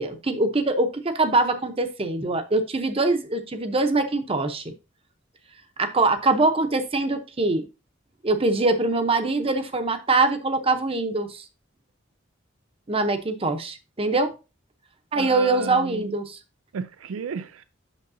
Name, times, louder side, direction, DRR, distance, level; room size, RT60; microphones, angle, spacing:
voice 1, 0.0-4.7 5.8-7.6 8.2-11.4 12.9-14.3 15.1-16.4, right 2 dB, 30° right, 0.8 m, -23 dB
voice 2, 15.1-16.1 16.7-17.6, right 5 dB, 85° right, 0.4 m, -33 dB
8.1 x 6.4 x 2.7 m
head